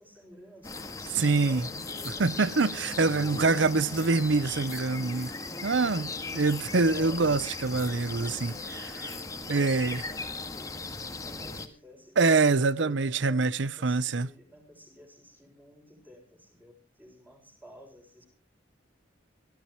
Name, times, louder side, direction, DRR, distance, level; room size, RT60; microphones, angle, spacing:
voice 1, 0.0-3.5 6.9-7.3 7.6-8.7 9.3-18.3, equal, 10° right, 6.2 m, -52 dB
sound 1, 0.6-11.7, left 3 dB, 15° left, 1.8 m, -38 dB
voice 2, 1.1-1.6 2.2-5.3 5.6-8.5 9.5-10.0 12.2-14.3, right 3 dB, 70° right, 0.7 m, -25 dB
23.5 x 15.0 x 3.0 m
head